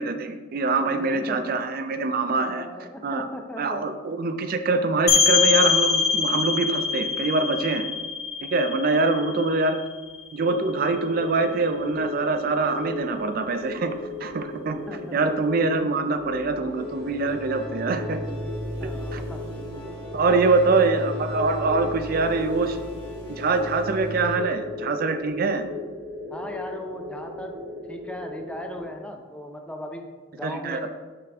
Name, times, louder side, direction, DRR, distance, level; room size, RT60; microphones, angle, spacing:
voice 1, 0.0-2.7 3.0-3.3 3.6-7.9 8.4-9.8 10.3-14.8 15.1-18.2 19.1-19.2 20.1-22.8 23.3-25.6 30.4-30.9, right 3 dB, 50° right, 8 dB, 0.4 m, -24 dB
voice 2, 0.7-1.4 2.4-3.8 8.9-9.5 14.9-15.6 18.8-19.4 20.3-20.8 26.3-30.9, left 1 dB, 5° left, 3 dB, 0.5 m, -38 dB
sound 1, 5.1-10.6, left 5 dB, 55° left, 1.0 m, -24 dB
sound 2, 10.4-28.8, left 2 dB, 75° right, 1.8 m, -37 dB
sound 3, 16.1-24.4, equal, 25° left, 1.5 m, -36 dB
5.8 x 4.9 x 3.5 m, 1.3 s
head